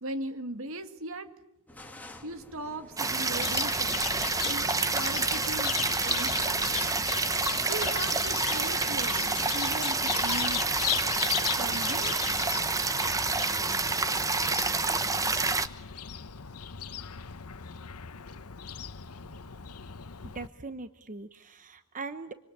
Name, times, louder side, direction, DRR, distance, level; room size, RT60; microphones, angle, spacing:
voice 1, 0.0-1.3 2.2-4.0 4.4-6.6 7.7-10.7 11.4-12.2, right 2 dB, 65° right, 9 dB, 2.1 m, -39 dB
sound 1, 1.7-12.5, left 1 dB, 5° left, 2.8 m, -50 dB
sound 2, 3.0-15.7, right 3 dB, 15° right, 1.1 m, -28 dB
Chirp tweet, 3.3-20.5, left 10 dB, 90° left, 1.0 m, -37 dB
voice 2, 20.2-22.3, right 3 dB, 35° right, 10 dB, 1.0 m, -41 dB
26.0 x 25.5 x 8.7 m, 0.87 s
head